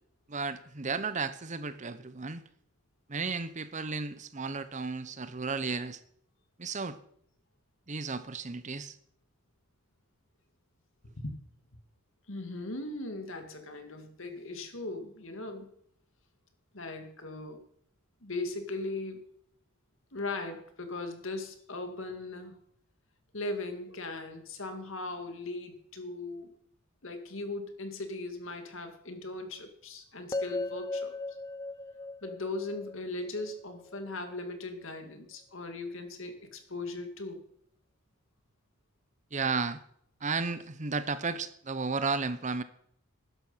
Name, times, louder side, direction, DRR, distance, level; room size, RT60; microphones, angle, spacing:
voice 1, 0.3-2.4 3.1-6.0 6.6-7.0 7.9-9.0 39.3-39.8 40.2-42.6, right 4 dB, 35° right, 13 dB, 0.8 m, -33 dB
voice 2, 12.3-15.7 16.7-17.7 18.2-19.3 20.1-22.6 23.3-26.5 27.0-31.1 32.2-37.4, left 2 dB, 60° left, 7 dB, 2.2 m, -38 dB
sound 1, 30.3-34.4, left 2 dB, 15° left, 0.4 m, -38 dB
13.0 x 11.0 x 5.7 m, 0.67 s
head